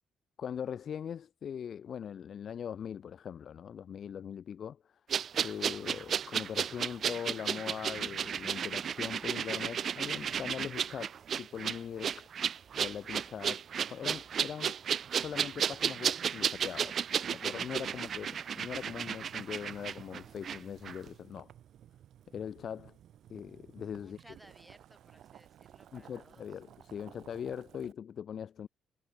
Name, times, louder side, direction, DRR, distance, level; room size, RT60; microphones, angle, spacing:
voice 1, 0.4-5.0 5.4-12.3 12.8-13.6 13.9-14.7 15.2-17.0 17.3-18.3 18.5-21.5 22.3-23.0 23.3-24.3 25.9-28.7, left 8 dB, 50° left, 1.6 m, -41 dB
sound 1, 5.1-20.6 20.8-21.0, right 8 dB, 50° right, 0.5 m, -33 dB
Boiling, 18.6-27.9, right 11 dB, 65° right, 6.5 m, -56 dB
voice 2, 24.0-26.5, right 1 dB, 5° right, 6.6 m, -60 dB
cardioid pair, 130°, 0 cm